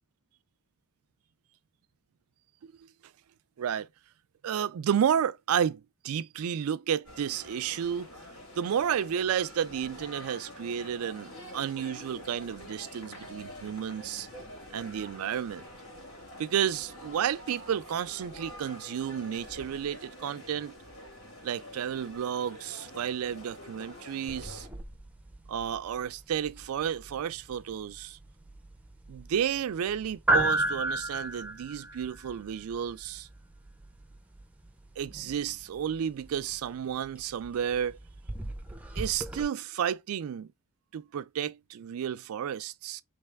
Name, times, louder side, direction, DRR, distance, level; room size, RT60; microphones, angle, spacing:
voice 1, 4.4-8.1 8.6-14.3 14.7-15.6 16.4-20.7 21.4-24.7 25.5-28.2 29.1-33.3 35.0-38.0 39.0-40.5 40.9-43.0, right 8 dB, 75° right, 0.3 m, -32 dB
sound 1, 7.0-24.7, left 1 dB, 90° left, 2.3 m, -47 dB
sound 2, 24.3-39.4, right 1 dB, 5° right, 0.5 m, -35 dB
3.3 x 3.2 x 3.3 m
head